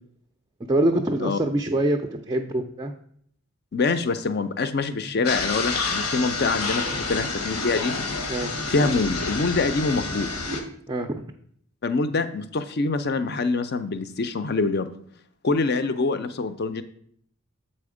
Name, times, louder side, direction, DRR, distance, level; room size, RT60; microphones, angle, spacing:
voice 1, 0.7-2.9 8.3-8.7 10.9-11.2, right 1 dB, 20° right, 4 dB, 0.3 m, -25 dB
voice 2, 3.7-7.9 8.7-10.3 11.8-14.9 15.4-16.8, left 3 dB, 45° left, 11 dB, 0.5 m, -25 dB
sound 1, 5.2-10.6, left 3 dB, 90° left, 1.1 m, -29 dB
7.5 x 4.3 x 4.9 m, 0.65 s
head